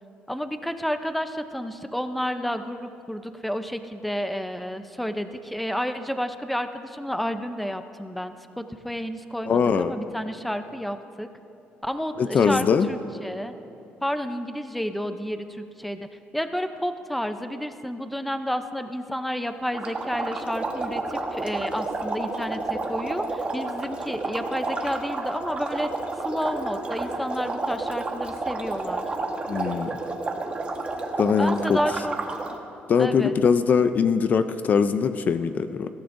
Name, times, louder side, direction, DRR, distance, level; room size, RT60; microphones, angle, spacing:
voice 1, 0.3-11.3 11.8-13.5 14.0-16.1 16.3-25.9 26.2-29.1 31.4-32.2 33.0-33.3, equal, ahead, 8 dB, 0.6 m, -30 dB
voice 2, 9.5-9.9 12.2-12.9 29.5-29.9 31.2-31.8 32.9-35.9, left 6 dB, 45° left, 10 dB, 0.5 m, -21 dB
sound 1, 19.7-32.6, right 3 dB, 30° right, 1.3 m, -30 dB
21.0 x 15.5 x 2.6 m, 2.7 s
cardioid pair, 115°, 4 cm